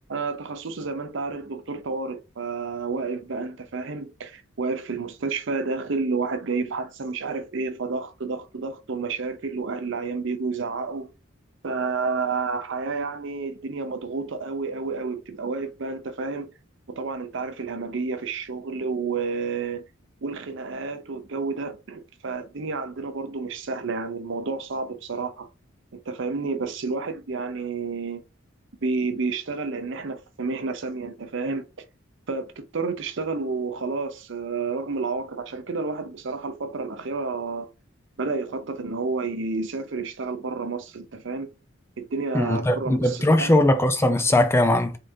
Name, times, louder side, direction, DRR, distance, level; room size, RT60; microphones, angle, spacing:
voice 1, 0.1-11.1 11.6-16.5 16.9-19.8 20.2-25.5 25.9-28.2 28.8-31.6 32.3-37.7 38.2-41.5 42.0-43.6, right 4 dB, 65° right, 0.6 m, -30 dB
voice 2, 42.3-45.0, left 1 dB, 10° left, 0.4 m, -20 dB
3.7 x 3.5 x 2.7 m
head